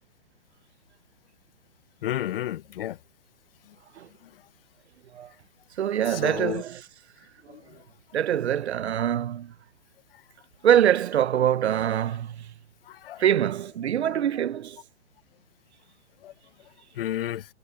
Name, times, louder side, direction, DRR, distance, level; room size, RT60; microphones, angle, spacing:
voice 1, 2.0-3.0 6.1-6.6 7.5-7.6 12.9-13.2 16.2-16.3 17.0-17.4, left 12 dB, 50° left, 1.1 m, -31 dB
voice 2, 5.8-6.8 8.1-9.5 10.6-12.5 13.2-14.8, right 10 dB, 65° right, 1.1 m, -24 dB
hypercardioid pair, 140°, 36 cm